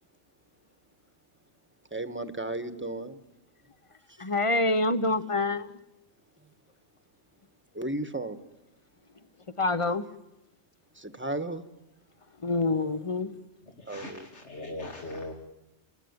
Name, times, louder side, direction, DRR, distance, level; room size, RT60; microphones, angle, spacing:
voice 1, 1.9-3.2 7.7-8.4 10.9-11.6 13.8-14.3, right 2 dB, 10° right, 1.3 m, -34 dB
voice 2, 4.2-5.7 9.6-10.0 12.4-13.3, left 2 dB, 30° left, 1.0 m, -26 dB
voice 3, 13.6-15.3, left 2 dB, 70° left, 2.7 m, -40 dB
29.0 x 19.5 x 9.7 m
omnidirectional pair, 1.2 m